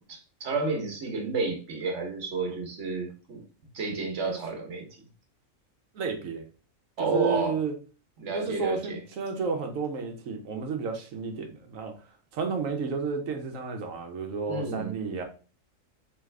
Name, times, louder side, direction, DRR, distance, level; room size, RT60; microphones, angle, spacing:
voice 1, 0.4-3.4 3.7-4.9 7.0-7.6 8.2-9.0 14.5-14.9, right 3 dB, 65° right, 2 dB, 1.3 m, -30 dB
voice 2, 5.9-6.4 7.0-7.7 8.3-11.9 12.3-15.2, right 5 dB, 85° right, 5 dB, 1.2 m, -32 dB
3.6 x 3.2 x 3.3 m, 0.36 s
omnidirectional pair, 1.4 m